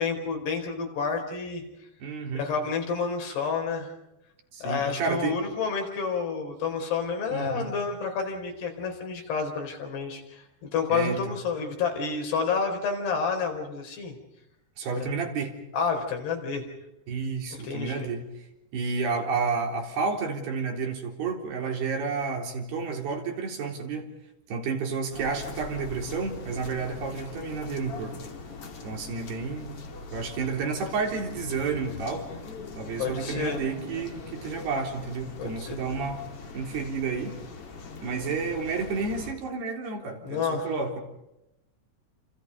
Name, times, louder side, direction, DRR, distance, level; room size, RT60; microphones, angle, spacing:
voice 1, 0.0-1.6 2.3-3.9 4.6-14.2 15.0-15.1 15.7-16.6 17.6-18.1 33.0-33.6 35.4-35.8 40.2-40.7, left 5 dB, 85° left, 3 dB, 6.5 m, -29 dB
voice 2, 2.0-2.5 4.5-5.4 7.3-7.7 10.9-11.3 14.8-15.5 17.1-18.3 18.7-24.1 24.5-28.2 28.8-29.8 30.1-32.3 32.8-36.2 36.5-37.4 38.0-41.0, right 4 dB, 80° right, 2 dB, 5.8 m, -31 dB
sound 1, 25.1-39.3, left 4 dB, 40° left, 3.2 m, -41 dB
29.5 x 27.5 x 5.4 m, 0.88 s
omnidirectional pair, 4.6 m